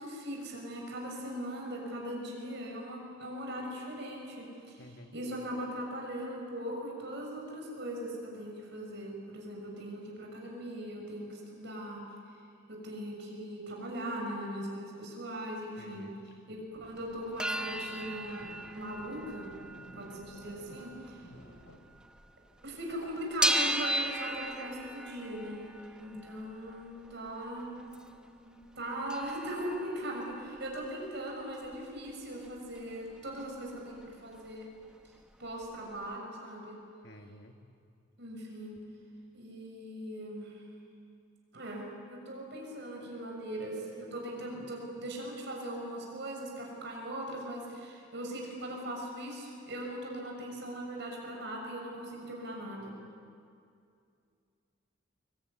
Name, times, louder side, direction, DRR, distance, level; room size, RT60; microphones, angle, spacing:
voice 1, 0.0-12.0 12.7-19.5 19.9-21.2 22.6-25.7 26.0-27.7 28.5-34.7 35.4-36.8 38.2-38.8 39.3-40.6 41.5-52.9, right 1 dB, 55° right, -1 dB, 6.4 m, -40 dB
voice 2, 4.8-5.2 15.8-16.2 37.0-37.5, left 1 dB, 55° left, 5 dB, 1.9 m, -52 dB
sound 1, 16.8-21.8, equal, 80° left, 3.2 m, -54 dB
sound 2, 17.1-22.3 22.6-28.2 28.6-28.7 28.9-32.8 33.1-34.1 34.3-34.4 34.7-35.7 36.1-36.2, right 1 dB, 5° right, 1.2 m, -37 dB
25.0 x 23.5 x 9.6 m, 2.4 s
head